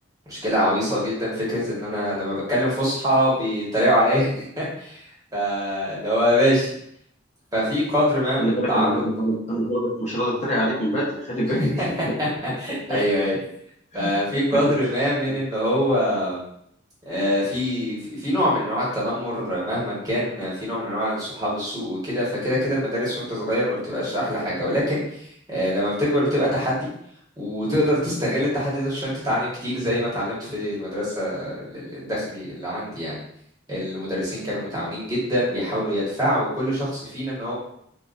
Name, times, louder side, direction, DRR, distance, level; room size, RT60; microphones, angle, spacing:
voice 1, 0.3-5.0 5.3-6.7 7.5-9.0 11.8-11.9 12.2-12.3 12.6-13.4 13.9-16.4 17.1-25.0 25.5-26.9 27.4-33.2 33.7-37.5, equal, 20° right, -8 dB, 1.3 m, -24 dB
voice 2, 8.4-11.7 12.1-12.4 12.9-13.0 13.9-14.1 15.3-15.4, equal, 35° left, -6 dB, 0.8 m, -25 dB
3.7 x 2.5 x 2.5 m, 0.71 s
head